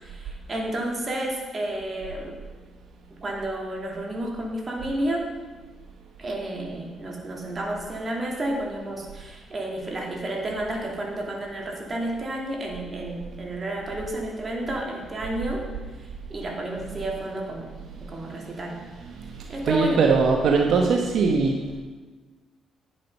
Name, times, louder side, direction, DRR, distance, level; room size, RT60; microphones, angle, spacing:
voice 1, 0.0-2.4 3.2-5.3 6.2-15.6 16.0-17.7 18.1-18.8 19.5-20.0, right 1 dB, 35° right, -1 dB, 2.5 m, -31 dB
voice 2, 19.5-21.8, right 4 dB, 70° right, 2 dB, 1.0 m, -21 dB
10.0 x 7.5 x 5.4 m, 1.3 s
cardioid pair, 90°, 0 cm